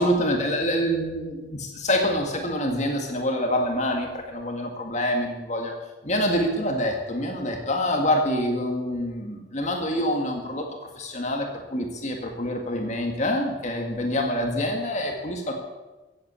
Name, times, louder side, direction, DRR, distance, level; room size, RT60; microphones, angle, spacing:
voice 1, 0.0-5.7 6.0-10.7 11.0-15.5, equal, 40° left, 2 dB, 1.8 m, -26 dB
15.0 x 8.6 x 8.2 m, 1.2 s
head